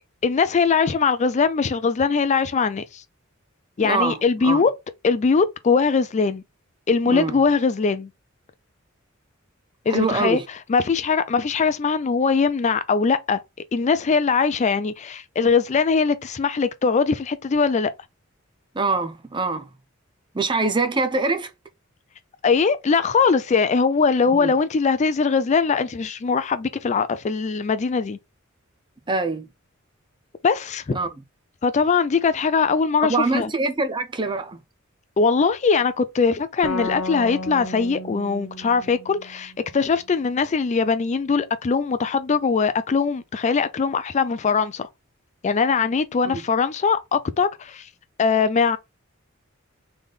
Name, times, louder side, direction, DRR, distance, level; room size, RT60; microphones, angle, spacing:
voice 1, 0.2-3.0 3.8-4.7 5.0-6.4 6.9-8.1 9.9-10.4 10.7-13.4 13.7-17.9 22.4-28.2 30.4-31.0 31.6-33.5 35.2-44.9 45.4-47.9 48.2-48.8, left 5 dB, 35° left, 0.4 m, -21 dB
voice 2, 3.8-4.6 7.0-7.4 9.9-10.5 18.7-19.7 20.3-21.5 24.3-24.5 29.1-29.5 30.9-31.2 33.1-34.6 46.2-46.4, right 3 dB, 20° right, 0.6 m, -24 dB
sound 1, 36.6-40.1, left 1 dB, 70° left, 1.0 m, -33 dB
3.6 x 3.3 x 3.9 m
head